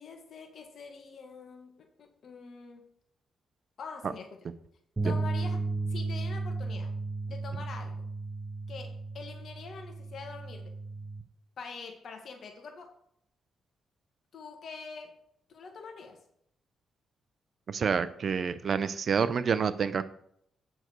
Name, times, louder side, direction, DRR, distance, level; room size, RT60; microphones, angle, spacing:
voice 1, 0.0-2.8 3.8-4.4 5.0-6.9 7.3-8.1 8.7-10.7 11.6-12.9 14.3-15.1 15.5-16.2, left 4 dB, 60° left, 4 dB, 1.8 m, -45 dB
sound 1, 5.0-11.2, right 3 dB, 20° right, 0.9 m, -34 dB
voice 2, 17.7-20.0, right 6 dB, 55° right, 13 dB, 0.7 m, -28 dB
8.9 x 6.6 x 4.6 m, 0.69 s
cardioid pair, 85°, 0 cm